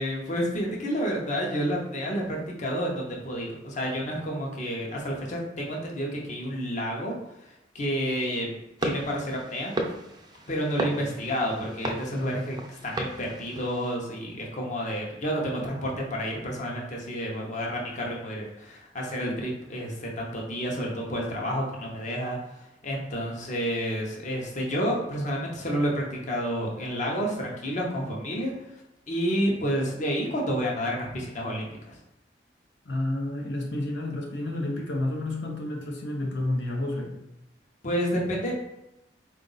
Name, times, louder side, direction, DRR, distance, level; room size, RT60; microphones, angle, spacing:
voice 1, 0.0-7.1 7.4-9.7 10.5-28.5 29.1-32.0 37.8-38.5, equal, 45° left, -1 dB, 0.8 m, -30 dB
sound 1, 8.8-13.9, right 1 dB, 20° right, 0.5 m, -35 dB
voice 2, 32.8-37.2, left 1 dB, 75° left, -1 dB, 0.7 m, -30 dB
3.8 x 2.5 x 3.9 m, 0.90 s
head